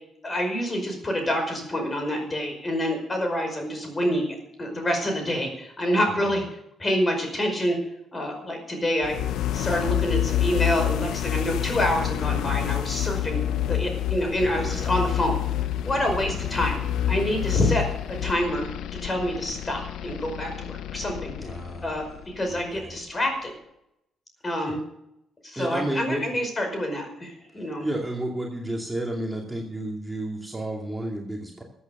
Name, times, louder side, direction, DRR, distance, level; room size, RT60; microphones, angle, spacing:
voice 1, 0.2-6.4 6.8-7.8 8.1-9.2 9.5-13.4 13.7-15.4 15.8-16.8 17.1-21.3 21.8-23.5 24.4-24.8 25.4-27.9, equal, 25° left, 4 dB, 5.2 m, -27 dB
sound 1, 9.0-22.9, left 12 dB, 80° left, 0.5 m, -28 dB
voice 2, 14.5-15.0 16.2-16.5 21.4-21.9 22.5-22.9 24.7-24.8 25.6-26.2 27.8-31.6, right 1 dB, 10° right, -1 dB, 2.4 m, -31 dB
14.5 x 8.6 x 6.7 m, 0.80 s
cardioid pair, 90°, 0 cm